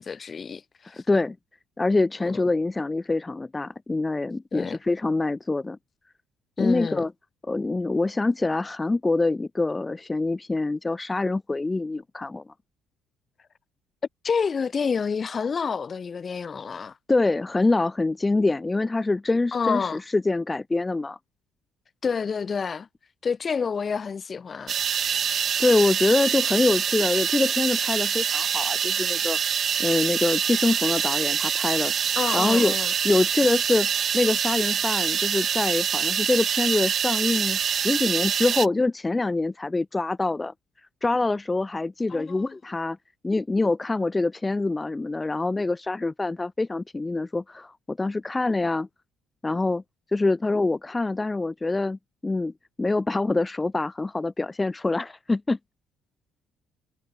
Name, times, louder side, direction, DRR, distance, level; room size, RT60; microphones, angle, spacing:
voice 1, 0.0-1.0 2.3-2.4 4.5-4.8 6.6-7.1 14.2-16.9 19.5-20.0 22.0-22.9 23.2-24.7 32.2-32.9 42.1-42.6, left 5 dB, 35° left, 1.7 m, -28 dB
voice 2, 1.8-5.8 6.6-7.1 7.4-12.4 17.1-21.2 25.6-29.4 29.8-31.9 32.3-32.7 33.0-33.9 34.1-40.5 41.0-43.0 43.2-48.9 49.4-49.8 50.1-52.5 52.8-55.6, left 3 dB, 20° left, 2.0 m, -25 dB
sound 1, 24.7-38.7, right 8 dB, 50° right, 4.5 m, -25 dB
cardioid pair, 85°, 0 cm